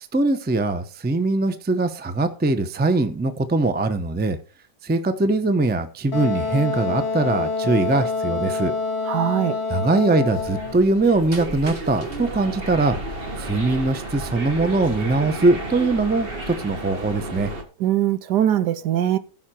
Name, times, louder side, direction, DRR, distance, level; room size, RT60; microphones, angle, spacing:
voice 1, 0.1-4.4 4.8-8.7 9.7-13.0 13.4-17.5, right 2 dB, 10° right, 0.5 m, -21 dB
Wind instrument woodwind instrument, 6.1-10.8, left 4 dB, 40° left, 1.3 m, -26 dB
voice 2, 9.1-9.6 17.8-19.2, right 11 dB, 75° right, 1.4 m, -21 dB
sound 1, 10.3-17.6, right 1 dB, 35° right, 1.6 m, -32 dB
15.0 x 5.8 x 4.4 m
omnidirectional pair, 1.8 m